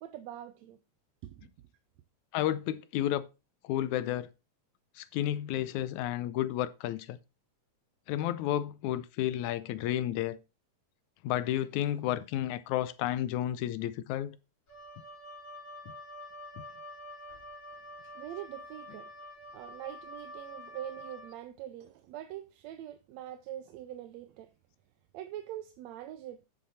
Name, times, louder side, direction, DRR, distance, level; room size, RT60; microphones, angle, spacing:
voice 1, 0.0-0.8 1.2-1.4 18.2-19.1 19.5-24.5 25.1-26.4, right 12 dB, 75° right, 1.8 m, -43 dB
voice 2, 2.3-3.3 3.6-4.3 5.0-7.2 8.1-10.4 11.2-14.4 16.6-16.7, left 12 dB, 85° left, 2.0 m, -31 dB
Wind instrument woodwind instrument, 14.7-21.4, left 1 dB, 40° left, 4.2 m, -47 dB
9.4 x 7.0 x 4.1 m
omnidirectional pair, 3.4 m